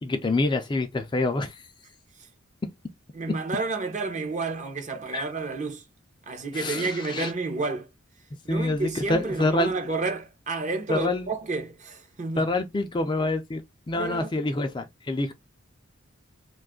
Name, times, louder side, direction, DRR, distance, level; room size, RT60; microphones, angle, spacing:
voice 1, 0.0-1.6 5.1-5.2 6.5-7.3 8.5-9.7 10.9-11.3 12.4-15.3, left 2 dB, 20° left, 0.4 m, -27 dB
voice 2, 3.1-5.8 6.3-7.9 8.4-12.5 13.9-14.3, right 3 dB, 35° right, 0.6 m, -30 dB
2.5 x 2.3 x 3.6 m
head